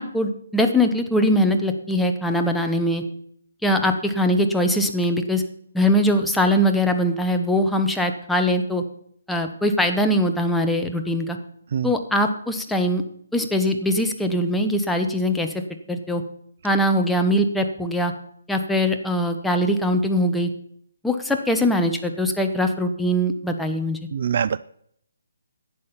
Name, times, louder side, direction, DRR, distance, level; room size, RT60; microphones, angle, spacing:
voice 1, 0.0-3.0 3.6-5.4 5.7-8.8 9.3-11.4 11.8-13.0 13.3-15.5 15.9-16.2 16.6-18.1 18.5-20.5 21.0-24.0, equal, ahead, 4 dB, 0.8 m, -21 dB
voice 2, 24.1-24.6, right 8 dB, 45° right, 17 dB, 0.3 m, -23 dB
11.0 x 8.6 x 5.6 m, 0.66 s
hypercardioid pair, 165°, 0 cm